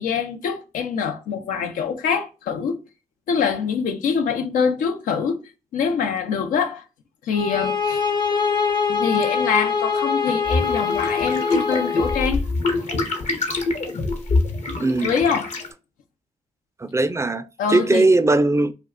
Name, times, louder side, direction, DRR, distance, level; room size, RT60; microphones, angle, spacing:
voice 1, 0.0-2.8 3.3-5.4 5.7-6.8 7.2-8.0 8.9-12.4 15.0-15.5 17.6-18.1, left 6 dB, 85° left, 0.4 m, -24 dB
sound 1, 7.3-12.3, left 5 dB, 35° left, 0.5 m, -23 dB
sound 2, 10.5-15.7, left 3 dB, 60° left, 0.8 m, -25 dB
voice 2, 14.8-15.1 16.8-17.4 17.7-18.7, right 2 dB, 20° right, 0.3 m, -19 dB
2.3 x 2.2 x 3.5 m
supercardioid pair, 40°, 13 cm